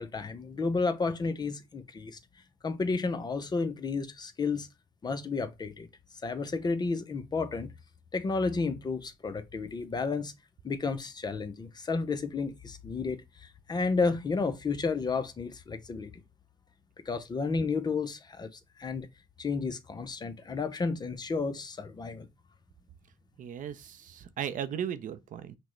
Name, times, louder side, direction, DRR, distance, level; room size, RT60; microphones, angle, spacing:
voice 1, 0.0-2.2 2.6-4.7 5.0-5.9 6.2-7.7 8.1-10.3 10.6-16.1 17.1-19.1 19.4-22.3, left 4 dB, 25° left, 0.5 m, -32 dB
voice 2, 23.4-25.6, right 9 dB, 50° right, 0.5 m, -36 dB
5.8 x 2.1 x 3.0 m
cardioid pair, 110°, 17 cm